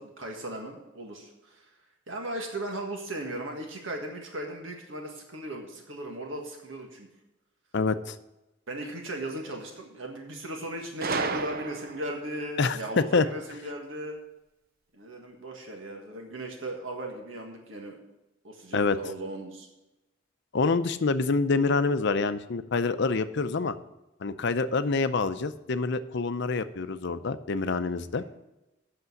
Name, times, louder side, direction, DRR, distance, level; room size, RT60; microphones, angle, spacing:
voice 1, 0.0-1.7 2.1-7.1 8.7-14.2 14.9-18.0 18.4-19.7 28.2-28.3, right 1 dB, 75° right, 2 dB, 1.7 m, -37 dB
voice 2, 7.7-8.2 12.6-13.2 18.7-19.0 20.5-23.7 24.2-28.2, left 4 dB, 60° left, 11 dB, 0.6 m, -26 dB
Gunshot gunfire, 11.0-12.2, right 4 dB, 50° right, 0.7 m, -32 dB
8.4 x 6.7 x 7.8 m, 0.98 s
head